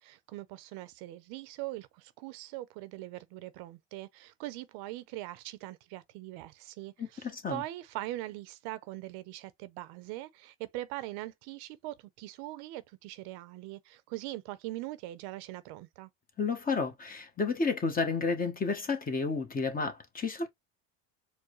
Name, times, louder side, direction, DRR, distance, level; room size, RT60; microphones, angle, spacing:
voice 1, 0.0-16.1, right 17 dB, 65° right, 0.6 m, -41 dB
voice 2, 7.0-7.6 16.4-20.5, left 4 dB, 20° left, 1.0 m, -31 dB
4.6 x 2.1 x 3.0 m
supercardioid pair, 115°, 41 cm